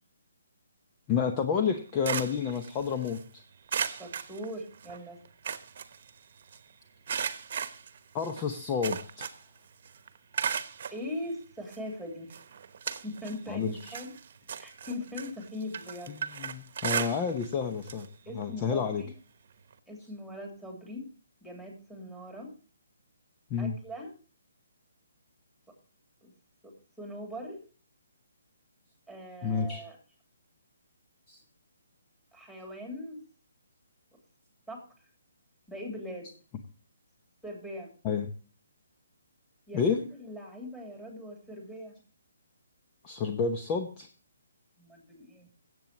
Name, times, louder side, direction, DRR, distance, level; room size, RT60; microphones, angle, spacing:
voice 1, 1.1-3.2 8.1-9.3 13.5-13.9 16.4-18.1 18.4-19.0 23.5-23.8 29.4-29.8 31.3-31.4 38.0-38.3 39.7-40.0 43.0-44.1, left 6 dB, 25° left, 5 dB, 0.9 m, -30 dB
sound 1, 1.7-3.2 3.7-5.0 5.3-6.6 7.1-9.6 9.9-11.0 11.7-11.8 12.3-13.4 13.7-17.5 17.8-18.1 18.4-18.5 19.7-19.8, right 7 dB, 50° right, 1.1 m, -36 dB
voice 2, 3.9-5.2 10.9-12.3 13.0-14.1 14.6-16.1 18.3-19.1 19.9-21.1 21.4-22.5 23.6-24.1 26.2-26.3 26.6-26.7 27.0-27.6 29.1-30.0 32.3-33.2 34.7-34.8 35.7-36.3 37.4-37.9 39.7-42.0 44.8-45.5, left 1 dB, ahead, 1 dB, 3.0 m, -40 dB
17.0 x 7.9 x 3.0 m, 0.39 s
figure-of-eight pair, 145°, 0 cm